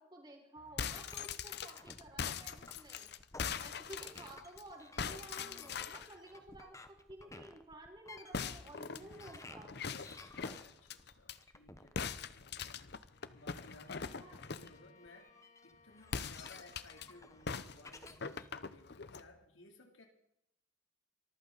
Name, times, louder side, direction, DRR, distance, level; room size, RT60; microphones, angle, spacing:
voice 1, 0.0-3.1 3.6-9.8 14.0-14.4, right 1 dB, 25° right, 0 dB, 5.3 m, -53 dB
sound 1, 0.6-4.6 5.0-6.1 8.3-11.4 12.0-14.8 16.0-17.1 17.5-19.3, left 6 dB, 55° left, 0.8 m, -42 dB
sound 2, 1.1-18.5, left 2 dB, 15° left, 1.0 m, -56 dB
voice 2, 3.5-4.1 10.1-12.8 13.3-20.1, left 2 dB, 85° left, 3 dB, 3.1 m, -60 dB
Bowed string instrument, 13.1-17.9, left 4 dB, 40° left, 1.9 m, -66 dB
25.0 x 14.5 x 4.0 m, 0.79 s
head